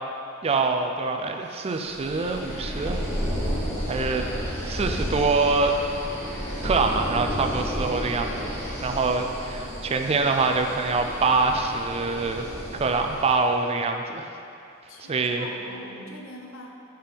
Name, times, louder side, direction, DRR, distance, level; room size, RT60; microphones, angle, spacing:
voice 1, 0.4-3.0 3.8-4.3 4.6-5.8 6.6-12.5 12.7-14.3 15.0-15.5, right 4 dB, 30° right, 5 dB, 0.4 m, -25 dB
sound 1, 1.7-13.4, equal, 10° left, 1.3 m, -32 dB
voice 2, 14.9-16.7, left 1 dB, 90° left, 1 dB, 0.8 m, -42 dB
5.2 x 4.5 x 5.1 m, 2.6 s
head